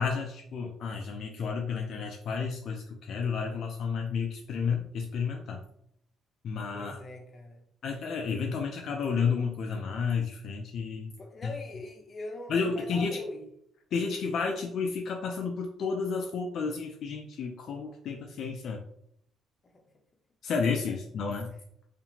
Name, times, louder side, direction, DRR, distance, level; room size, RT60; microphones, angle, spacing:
voice 1, 0.0-5.6 6.4-7.0 7.8-11.2 11.4-11.5 12.5-13.2 13.9-18.8 20.4-21.5, left 5 dB, 65° left, 1 dB, 0.4 m, -31 dB
voice 2, 6.7-7.6 11.2-13.4, left 2 dB, 35° left, 2 dB, 0.7 m, -42 dB
2.8 x 2.5 x 2.7 m, 0.73 s
cardioid pair, 95°, 0 cm